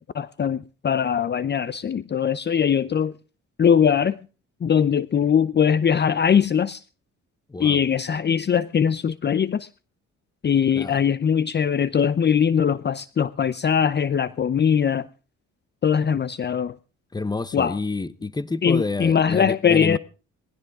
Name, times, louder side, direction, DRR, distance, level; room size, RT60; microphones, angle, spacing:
voice 1, 0.1-3.1 3.6-4.2 4.6-6.8 7.6-9.7 10.4-15.1 15.8-16.7 17.5-17.8 18.6-20.0, left 7 dB, 35° left, 0.6 m, -21 dB
voice 2, 17.1-20.0, left 3 dB, 15° left, 1.0 m, -29 dB
20.0 x 15.5 x 3.6 m
cardioid pair, 90°, 30 cm